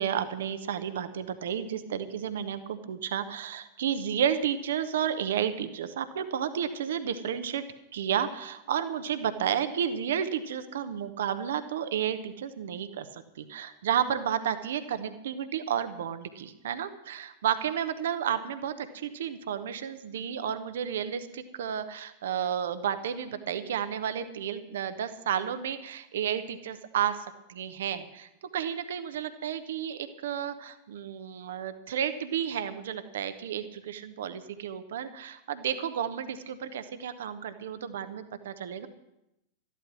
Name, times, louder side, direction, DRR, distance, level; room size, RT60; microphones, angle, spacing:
voice 1, 0.0-7.6 7.9-38.9, right 9 dB, 60° right, 10 dB, 1.0 m, -32 dB
13.5 x 12.0 x 6.1 m, 0.88 s
figure-of-eight pair, 90°, 0 cm